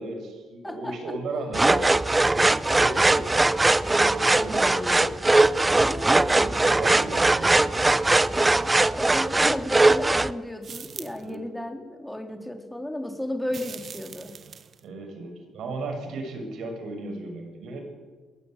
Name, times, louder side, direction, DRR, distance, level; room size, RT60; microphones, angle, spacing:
voice 1, 0.0-1.9 2.3-5.1 6.3-7.6 11.2-11.5 14.8-17.8, right 2 dB, 70° right, 5 dB, 7.0 m, -35 dB
voice 2, 0.6-1.1 5.7-6.2 8.4-14.4, left 1 dB, 5° left, 5 dB, 3.8 m, -34 dB
Saw cutting wood moderate, 1.5-10.3, right 2 dB, 15° right, 0.8 m, -20 dB
sound 1, 10.6-11.3 13.5-14.8, right 7 dB, 50° right, 1.4 m, -42 dB
21.5 x 19.5 x 9.3 m, 1.4 s
cardioid pair, 90°, 0 cm